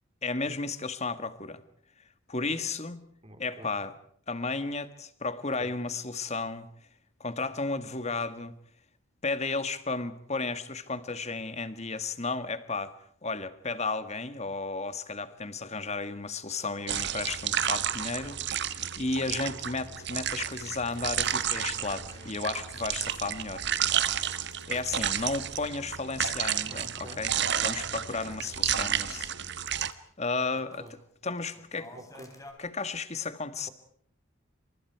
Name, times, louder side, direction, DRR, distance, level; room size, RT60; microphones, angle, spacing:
voice 1, 0.2-1.6 2.3-3.1 3.4-4.0 4.3-6.7 7.2-8.5 9.2-12.9 13.2-23.7 24.7-29.3 30.2-31.9 32.6-33.7, left 3 dB, 35° left, 1.7 m, -33 dB
voice 2, 3.2-3.7 5.6-5.7 26.7-27.2 30.8-30.9 31.9-32.3, right 1 dB, 30° right, 3.5 m, -48 dB
sound 1, 16.9-29.9, right 9 dB, 55° right, 1.4 m, -31 dB
sound 2, 19.8-23.4 23.8-25.8 26.0-26.1 26.6-29.3 29.7-30.0 30.4-30.9 31.3-32.5, left 2 dB, 15° left, 4.3 m, -53 dB
29.0 x 26.5 x 4.7 m
head